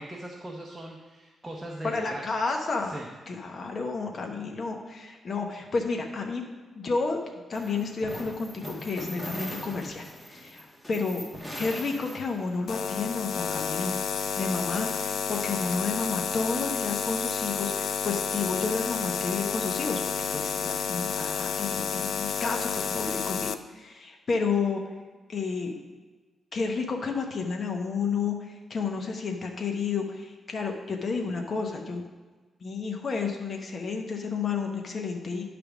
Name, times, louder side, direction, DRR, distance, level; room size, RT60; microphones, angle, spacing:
voice 1, 0.0-2.2 2.8-3.1, right 1 dB, 15° right, -1 dB, 0.8 m, -39 dB
voice 2, 1.8-3.0 3.3-6.4 6.7-7.2 7.5-11.3 11.6-13.9 14.4-24.8 25.3-25.7 26.5-32.0 32.6-35.4, left 4 dB, 40° left, 2 dB, 0.9 m, -31 dB
sound 1, 7.5-12.7, equal, 5° left, 1.1 m, -40 dB
sound 2, 12.7-23.5, left 6 dB, 65° left, 0.3 m, -30 dB
10.0 x 3.4 x 6.0 m, 1.3 s
cardioid pair, 130°, 0 cm